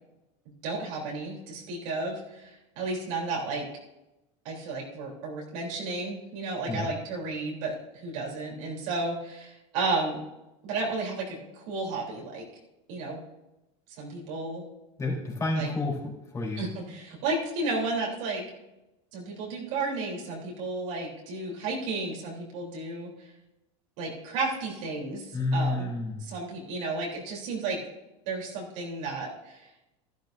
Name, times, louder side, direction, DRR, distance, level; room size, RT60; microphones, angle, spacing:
voice 1, 0.6-3.6 4.5-10.2 10.6-12.4 12.9-13.2 14.0-14.6 15.5-15.7 16.6-18.4 19.1-23.3 24.0-25.9 26.2-27.8 28.3-29.7, right 3 dB, 75° right, -3 dB, 3.6 m, -33 dB
voice 2, 15.0-16.7 25.3-26.2, left 2 dB, 20° left, -3 dB, 3.7 m, -30 dB
13.5 x 12.0 x 2.7 m, 0.96 s
supercardioid pair, 120°, 16 cm